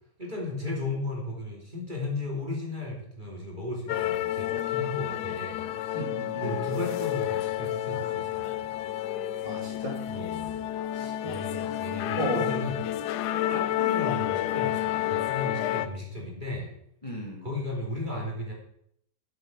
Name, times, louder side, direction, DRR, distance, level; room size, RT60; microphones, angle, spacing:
voice 1, 0.2-5.6 5.9-6.0 6.4-8.5 10.1-10.6 10.9-12.8 13.5-16.7 17.4-18.5, left 2 dB, 25° right, -1 dB, 2.8 m, -35 dB
sound 1, 3.9-15.9, left 13 dB, 75° left, 1.1 m, -30 dB
voice 2, 5.9-6.7 9.4-10.0 11.2-11.3 12.2-12.5 17.0-17.5, equal, 20° left, -1 dB, 2.0 m, -33 dB
11.0 x 7.8 x 6.1 m, 0.71 s
omnidirectional pair, 1.8 m